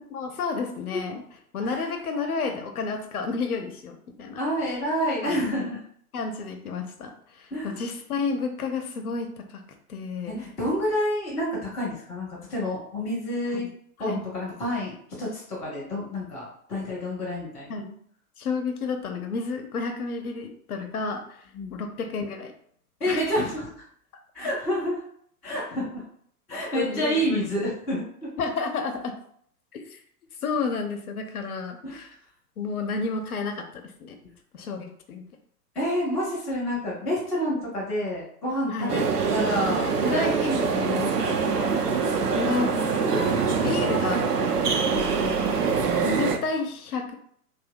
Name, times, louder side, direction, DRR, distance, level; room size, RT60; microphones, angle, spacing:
voice 1, 0.1-1.2 1.5-4.4 5.2-5.4 6.1-9.6 9.9-10.4 13.5-13.7 14.0-14.2 17.7-18.0 18.4-22.5 23.1-23.2 26.7-27.5 28.4-29.1 29.7-30.0 30.4-32.1 32.6-33.7 34.0-34.2 34.5-35.2 38.7-39.0 41.4-41.9 42.3-43.2 43.6-44.3 44.9-45.5 46.0-47.1, left 4 dB, 65° left, 5 dB, 0.7 m, -31 dB
voice 2, 4.4-5.8 7.5-7.7 10.3-13.6 14.0-17.8 21.5-21.8 23.0-23.7 24.3-25.0 25.4-26.0 26.5-28.3 31.8-32.0 35.7-39.0 39.3-41.8 43.7-43.9, equal, 5° left, -12 dB, 0.4 m, -29 dB
sound 1, 38.9-46.4, right 5 dB, 80° right, 0.6 m, -24 dB
2.7 x 2.1 x 3.5 m, 0.63 s
figure-of-eight pair, 100°, 46 cm